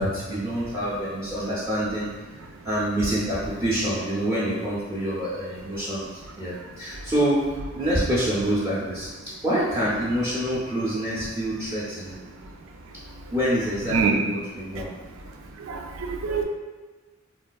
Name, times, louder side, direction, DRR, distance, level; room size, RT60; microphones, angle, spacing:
voice 1, 0.0-2.1 2.6-6.1 6.4-7.5 7.7-9.1 9.4-12.2 13.3-14.9, right 1 dB, 15° right, -9 dB, 0.5 m, -26 dB
voice 2, 15.6-16.4, right 5 dB, 90° right, 3 dB, 0.4 m, -24 dB
3.3 x 2.3 x 2.2 m, 1.3 s
head